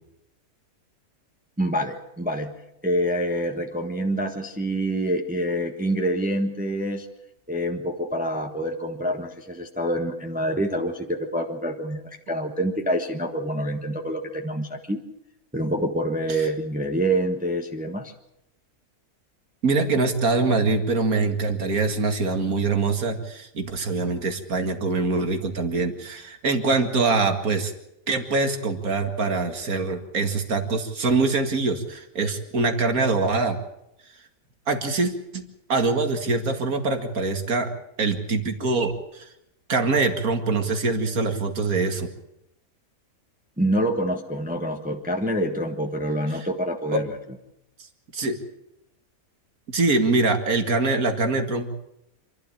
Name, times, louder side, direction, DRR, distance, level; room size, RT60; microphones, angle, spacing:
voice 1, 1.6-2.5 2.8-7.1 7.5-15.0 15.5-18.1 43.6-47.2, right 1 dB, 5° right, 4 dB, 1.2 m, -26 dB
voice 2, 19.6-27.7 28.1-33.6 34.7-35.4 35.7-37.7 38.0-39.3 39.7-42.1 46.9-47.0 48.1-48.4 49.7-51.7, right 3 dB, 80° right, 6 dB, 2.5 m, -24 dB
27.5 x 12.5 x 8.7 m, 0.85 s
omnidirectional pair, 1.5 m